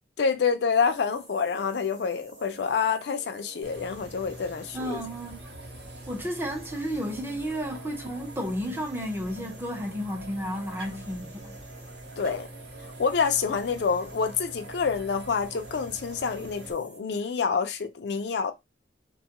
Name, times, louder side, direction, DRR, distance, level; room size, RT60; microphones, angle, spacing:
voice 1, 0.2-5.0 12.2-12.5 13.0-18.5, left 5 dB, 70° left, 0.4 m, -27 dB
sound 1, 0.7-17.0, right 3 dB, 40° right, 0.9 m, -49 dB
sound 2, 3.6-16.7, right 1 dB, 70° right, 0.7 m, -45 dB
voice 2, 4.7-5.4 6.1-11.6, equal, 15° right, 0.5 m, -32 dB
2.6 x 2.3 x 2.8 m
head